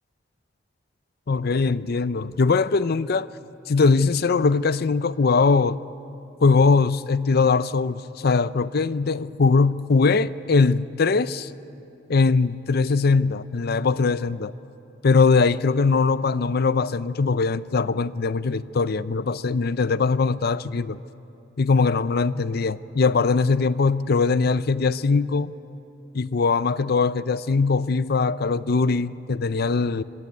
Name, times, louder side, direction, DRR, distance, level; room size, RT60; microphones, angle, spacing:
voice 1, 1.3-3.3 3.7-5.8 6.4-11.5 12.1-14.5 15.0-21.0 21.6-25.5 26.1-30.0, left 4 dB, 55° left, 15 dB, 0.6 m, -21 dB
26.0 x 23.5 x 9.3 m, 2.9 s
head